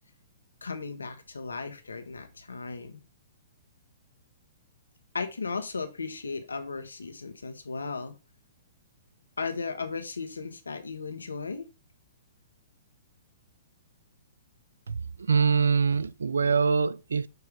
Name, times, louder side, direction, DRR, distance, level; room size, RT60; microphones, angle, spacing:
voice 1, 0.6-3.0 5.1-8.1 9.4-11.7, left 4 dB, 85° left, 1.2 m, -36 dB
voice 2, 14.9-17.3, right 5 dB, 80° right, 0.4 m, -24 dB
6.8 x 3.3 x 4.8 m
hypercardioid pair, 120°, 0 cm